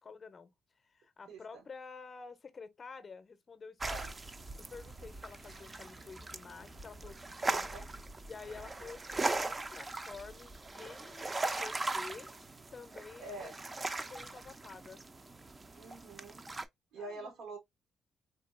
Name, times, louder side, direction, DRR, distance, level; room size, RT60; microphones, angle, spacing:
voice 1, 0.0-4.0 4.6-7.7 8.2-11.3 11.6-12.3 12.7-15.0 17.0-17.3, left 4 dB, 40° left, 0.6 m, -50 dB
voice 2, 1.3-1.6 3.8-4.1 7.5-7.9 13.2-13.6 15.7-16.5 16.9-17.6, right 2 dB, 85° right, 1.3 m, -46 dB
sound 1, 3.8-16.7, right 2 dB, 25° right, 0.4 m, -39 dB
sound 2, 4.6-9.5, left 1 dB, 70° right, 1.9 m, -61 dB
3.6 x 2.3 x 2.3 m
cardioid pair, 90°, 0 cm